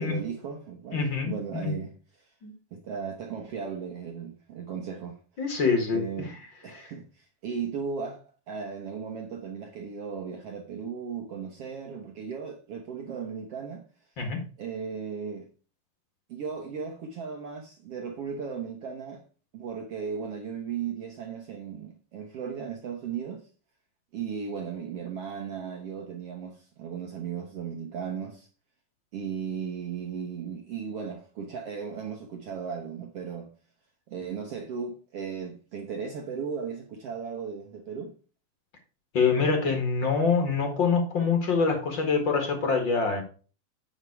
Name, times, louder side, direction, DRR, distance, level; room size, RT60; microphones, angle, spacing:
voice 1, 0.0-1.9 2.2-2.3 2.7-5.2 5.9-6.3 6.6-13.8 14.6-15.5 16.3-19.2 19.5-23.4 24.1-28.5 29.1-33.5 34.1-38.1, right 6 dB, 75° right, 1.3 m, -36 dB
voice 2, 0.9-1.7 2.4-2.5 5.4-6.3 6.7-6.9 14.2-14.4 39.1-43.2, left 5 dB, 45° left, 1.7 m, -25 dB
9.2 x 5.7 x 4.7 m
omnidirectional pair, 4.3 m